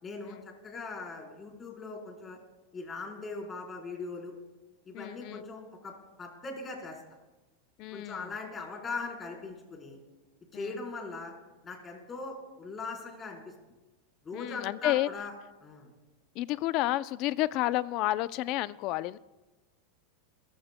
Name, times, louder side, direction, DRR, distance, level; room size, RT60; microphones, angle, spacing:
voice 1, 0.0-0.4 0.6-2.4 2.7-4.3 4.9-5.9 6.2-7.0 7.9-10.0 10.5-11.3 11.6-13.4 14.2-15.3 15.6-15.9, left 3 dB, 20° left, 0 dB, 4.0 m, -40 dB
voice 2, 4.9-5.4 7.8-8.3 10.5-10.8 14.3-15.1 16.3-19.2, left 16 dB, 50° left, 16 dB, 0.5 m, -31 dB
29.5 x 14.5 x 2.2 m, 1.1 s
supercardioid pair, 130°, 0 cm